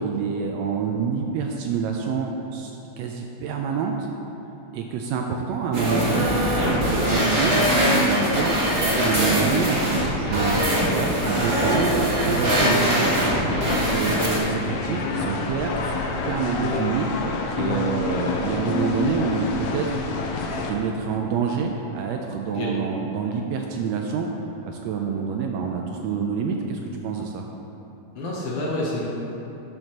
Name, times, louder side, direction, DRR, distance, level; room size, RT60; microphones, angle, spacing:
voice 1, 0.0-3.9 4.7-7.7 8.0-13.2 13.7-17.1 17.5-20.0 20.5-24.3 24.7-27.4, right 6 dB, 80° right, 2 dB, 1.6 m, -27 dB
sound 1, 5.7-14.4, equal, 30° right, 1.1 m, -22 dB
voice 2, 10.5-10.8 22.5-22.7 28.1-29.1, left 1 dB, 65° left, -5 dB, 1.7 m, -29 dB
sound 2, 13.5-20.7, left 3 dB, 80° left, 2.0 m, -28 dB
12.5 x 6.5 x 2.9 m, 3.0 s
omnidirectional pair, 3.3 m